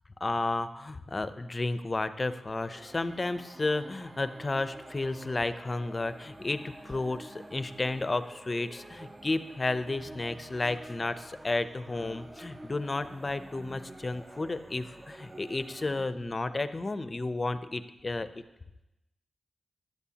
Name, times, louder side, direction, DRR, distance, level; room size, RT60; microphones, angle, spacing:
voice 1, 0.2-18.3, left 2 dB, 30° left, 12 dB, 0.5 m, -32 dB
sound 1, 2.4-16.0, right 1 dB, 20° right, 0.5 m, -48 dB
15.5 x 10.5 x 2.9 m, 0.95 s
wide cardioid pair, 120°, 0 cm